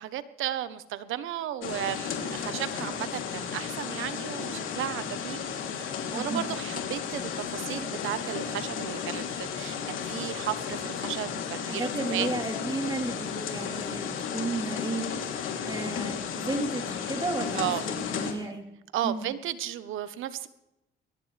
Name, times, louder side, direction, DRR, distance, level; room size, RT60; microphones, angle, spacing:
voice 1, 0.0-5.4 5.7-12.3 17.6-17.8 18.9-20.5, right 12 dB, 85° right, 13 dB, 1.2 m, -34 dB
sound 1, 1.6-18.3, left 7 dB, 85° left, 3.3 m, -34 dB
voice 2, 6.1-6.5 11.7-18.7 19.0-19.3, right 2 dB, 20° right, 2 dB, 3.8 m, -33 dB
22.5 x 18.0 x 3.5 m, 0.88 s
cardioid pair, 90°, 20 cm